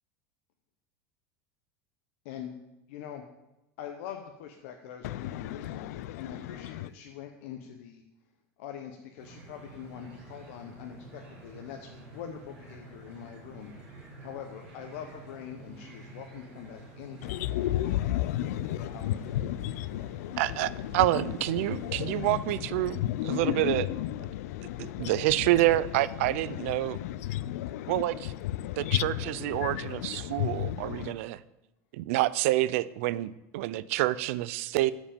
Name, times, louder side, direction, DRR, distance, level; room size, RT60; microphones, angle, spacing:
voice 1, 2.9-3.2 3.8-5.9 6.1-8.0 8.6-13.7 14.2-17.4 18.9-19.2, left 9 dB, 60° left, 0.8 m, -43 dB
voice 2, 5.0-6.9 17.2-31.2, left 13 dB, 75° left, 0.4 m, -33 dB
sound 1, 9.2-22.7, right 2 dB, 10° right, 4.0 m, -49 dB
voice 3, 20.4-23.0 23.3-23.8 24.8-27.0 27.9-28.1 28.8-29.1 29.4-31.4 31.9-34.9, right 16 dB, 60° right, 0.4 m, -27 dB
12.5 x 5.1 x 5.1 m
supercardioid pair, 180°, 8 cm